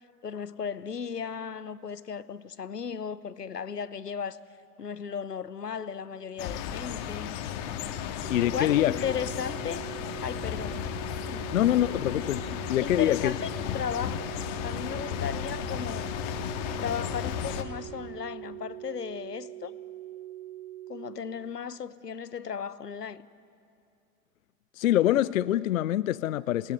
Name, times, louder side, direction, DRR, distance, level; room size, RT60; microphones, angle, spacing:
voice 1, 0.2-4.4 4.8-7.4 8.3-9.8 10.2-10.9 11.3-11.5 11.8-12.0 12.8-14.3 14.6-16.1 16.8-19.7 20.9-23.3, left 7 dB, 80° left, 0.9 m, -35 dB
sound 1, 6.4-17.6, left 9 dB, 40° left, 1.7 m, -34 dB
sound 2, 8.2-21.2, right 14 dB, 65° right, 2.5 m, -43 dB
voice 2, 8.3-8.9 11.5-12.4 12.7-13.3 24.8-26.7, left 13 dB, 60° left, 0.5 m, -24 dB
27.0 x 20.0 x 9.3 m
figure-of-eight pair, 95°, 47 cm